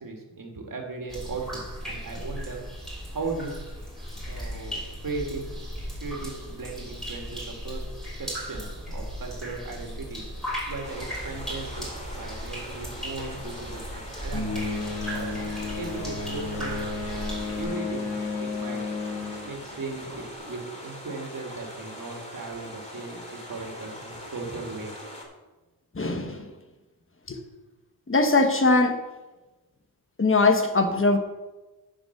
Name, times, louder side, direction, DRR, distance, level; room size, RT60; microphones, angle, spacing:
voice 1, 0.0-2.7 3.1-3.6 4.3-5.6 6.0-10.2 10.7-14.8 15.1-15.4 15.8-16.8 17.5-18.1 18.4-18.8 19.4-24.9, right 3 dB, 55° right, 1 dB, 2.3 m, -37 dB
sound 1, 1.1-17.6, equal, ahead, 3.4 m, -37 dB
sound 2, 10.8-25.2, equal, 15° left, 2.5 m, -42 dB
sound 3, 14.3-20.3, left 3 dB, 70° left, 1.8 m, -32 dB
voice 2, 25.9-26.5 27.3-27.4 28.1-29.0 30.2-31.2, left 3 dB, 30° left, 5 dB, 1.3 m, -21 dB
9.8 x 5.6 x 6.0 m, 1.1 s
wide cardioid pair, 85°, 39 cm